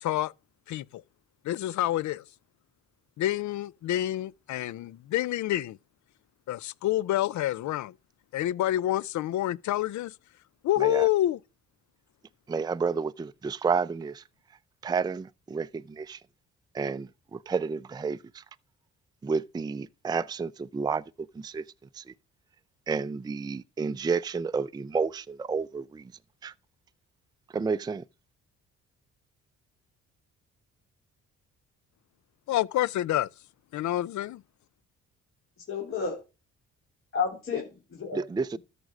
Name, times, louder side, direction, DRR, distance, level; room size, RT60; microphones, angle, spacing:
voice 1, 0.0-0.3 0.7-1.0 1.4-2.2 3.2-5.8 6.5-7.9 8.3-10.1 10.6-11.4 32.5-33.3 33.7-34.4, left 14 dB, 70° left, 0.6 m, -28 dB
voice 2, 10.8-11.1 12.5-14.2 14.8-16.2 16.7-18.4 19.2-21.6 21.9-22.1 22.9-26.1 26.4-26.5 27.5-28.0 38.1-38.6, right 5 dB, 15° right, 0.4 m, -31 dB
voice 3, 35.7-36.2 37.1-38.2, left 6 dB, 45° left, 3.6 m, -31 dB
13.0 x 5.2 x 6.0 m
cardioid pair, 90°, 30 cm